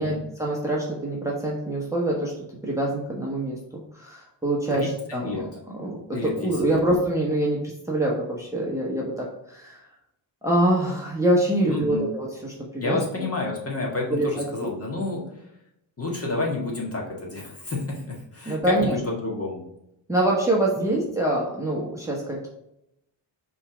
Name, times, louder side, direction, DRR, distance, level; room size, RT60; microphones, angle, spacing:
voice 1, 0.0-2.3 2.6-7.6 7.9-9.8 10.4-13.0 14.1-14.4 18.5-18.9 20.1-22.5, right 1 dB, 5° right, -3 dB, 1.1 m, -25 dB
voice 2, 4.7-5.4 6.1-6.6 11.7-12.1 12.8-15.2 16.0-19.6 20.8-20.9, left 2 dB, 30° left, -2 dB, 1.7 m, -30 dB
5.4 x 3.5 x 5.0 m, 0.82 s
cardioid pair, 130°, 45 cm